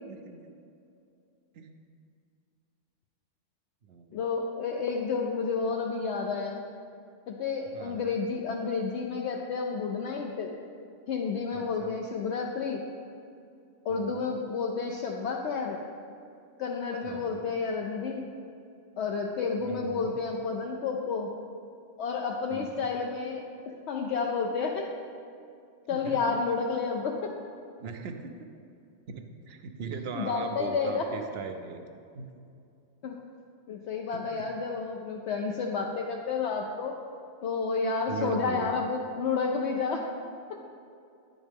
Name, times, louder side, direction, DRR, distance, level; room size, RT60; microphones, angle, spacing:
voice 1, 4.1-6.7 7.3-10.5 11.1-12.8 13.8-15.8 16.6-18.2 19.0-21.3 22.0-24.9 25.9-27.3 30.2-31.0 33.0-33.2 33.7-36.9 37.4-40.1, left 5 dB, 70° left, 1 dB, 0.8 m, -30 dB
voice 2, 7.7-8.1 11.5-11.9 13.9-14.3 17.0-17.5 19.6-20.1 22.5-22.9 25.9-26.2 27.8-28.5 29.1-31.8 32.1-32.3 34.1-34.2 38.1-38.7, right 5 dB, 60° right, 6 dB, 0.8 m, -39 dB
9.7 x 7.2 x 3.5 m, 2.5 s
omnidirectional pair, 1.3 m